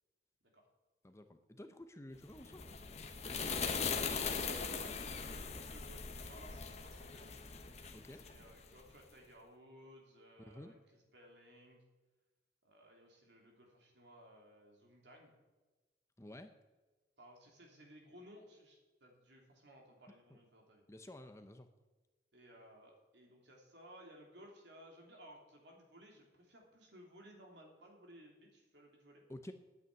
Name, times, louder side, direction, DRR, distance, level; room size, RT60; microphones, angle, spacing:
voice 1, 1.0-2.6 3.0-3.4 7.9-8.2 10.5-10.7 16.2-16.5 20.3-20.4 20.9-21.7 29.3-29.5, left 1 dB, 15° left, 8 dB, 0.6 m, -52 dB
sound 1, 2.3-8.9, left 5 dB, 35° left, 1.1 m, -40 dB
voice 2, 4.2-7.4 8.1-11.8 12.6-15.3 17.2-20.8 22.3-29.2, equal, 65° right, 0 dB, 3.1 m, -58 dB
9.5 x 8.4 x 9.3 m, 1.2 s
head